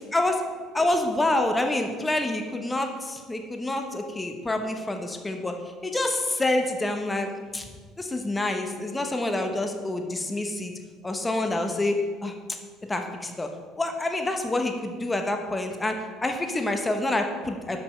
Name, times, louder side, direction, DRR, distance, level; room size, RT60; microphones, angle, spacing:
voice 1, 0.7-5.5 5.8-7.6 8.0-10.7 11.0-12.3 12.8-13.5 13.8-16.0 16.2-17.8, left 2 dB, 15° left, 4 dB, 0.9 m, -27 dB
5.3 x 5.2 x 6.5 m, 1.5 s
supercardioid pair, 85°, 0 cm